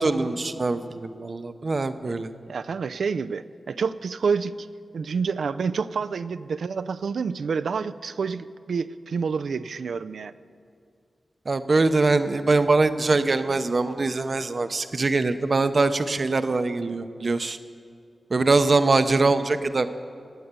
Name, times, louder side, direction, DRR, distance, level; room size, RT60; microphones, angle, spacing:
voice 1, 0.0-2.3 11.5-17.6 18.3-19.9, right 3 dB, 40° right, 10 dB, 0.7 m, -23 dB
voice 2, 2.5-4.6 4.9-10.3, right 5 dB, 85° right, 12 dB, 0.5 m, -28 dB
18.5 x 9.2 x 8.2 m, 2.3 s
wide cardioid pair, 145°, 0 cm